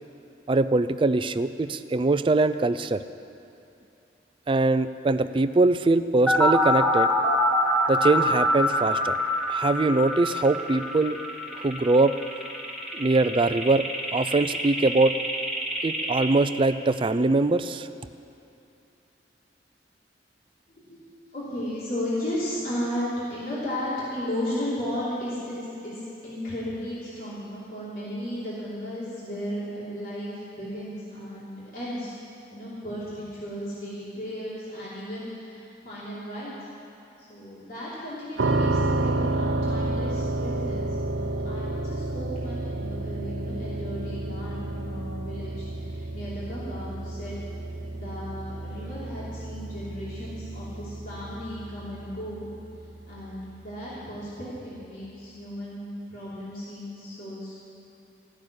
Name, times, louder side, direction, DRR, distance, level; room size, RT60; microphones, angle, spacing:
voice 1, 0.5-3.0 4.5-7.1 7.9-9.2 9.5-11.2 11.5-12.1 12.9-13.9 14.1-15.2 15.8-17.9, right 2 dB, 30° right, 12 dB, 0.4 m, -22 dB
sound 1, 6.3-16.3, left 1 dB, 5° left, 1.5 m, -25 dB
voice 2, 20.7-32.1 32.5-36.5 37.2-47.4 47.9-52.4 53.1-57.5, left 1 dB, 55° left, -9 dB, 3.2 m, -35 dB
sound 2, 38.4-53.2, right 2 dB, 80° right, 0.7 m, -30 dB
16.0 x 6.7 x 10.0 m, 2.8 s
head